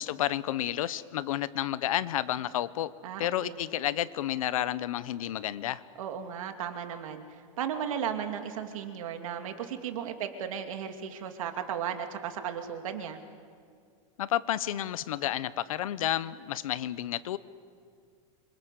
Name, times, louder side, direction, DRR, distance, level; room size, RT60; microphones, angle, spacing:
voice 1, 0.0-2.9 3.2-5.8 14.2-17.4, left 12 dB, 85° left, 16 dB, 1.1 m, -31 dB
voice 2, 3.0-3.6 6.0-13.2, right 8 dB, 75° right, 6 dB, 2.7 m, -35 dB
26.5 x 24.5 x 8.3 m, 2.3 s
supercardioid pair, 175°, 17 cm